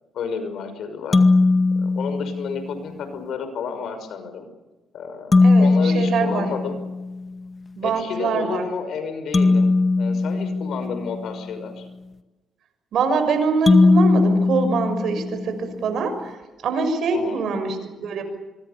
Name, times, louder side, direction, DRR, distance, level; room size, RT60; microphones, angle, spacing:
voice 1, 0.1-1.2 1.7-4.5 4.9-6.8 7.8-9.7 10.0-11.9 17.1-17.4, left 6 dB, 70° left, 9 dB, 5.8 m, -31 dB
sound 1, 1.1-2.8 5.3-7.3 9.3-11.5 13.7-15.7, left 3 dB, 30° left, 2.0 m, -19 dB
voice 2, 5.4-6.5 7.8-8.6 12.9-18.2, right 4 dB, 70° right, 8 dB, 6.5 m, -24 dB
26.0 x 23.0 x 7.0 m, 1.1 s
cardioid pair, 90°, 0 cm